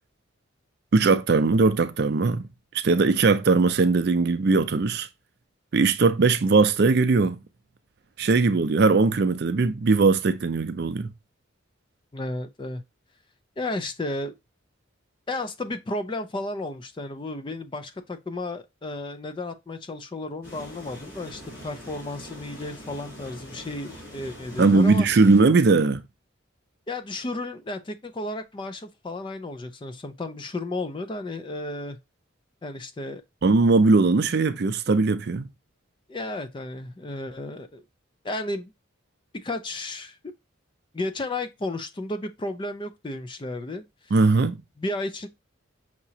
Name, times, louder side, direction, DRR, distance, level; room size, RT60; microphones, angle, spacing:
voice 1, 0.9-2.5 2.8-5.1 5.7-7.4 8.2-11.1 24.6-26.0 33.4-35.5 44.1-44.6, right 3 dB, 55° right, 0.4 m, -20 dB
voice 2, 12.1-12.8 13.6-14.4 15.3-25.1 26.9-32.0 32.6-33.2 36.1-37.8 38.2-38.7 39.3-40.2 40.9-44.1 44.8-45.3, left 2 dB, 25° left, 0.3 m, -33 dB
sound 1, 20.4-25.4, equal, 45° left, 2.7 m, -43 dB
5.9 x 2.9 x 2.7 m
head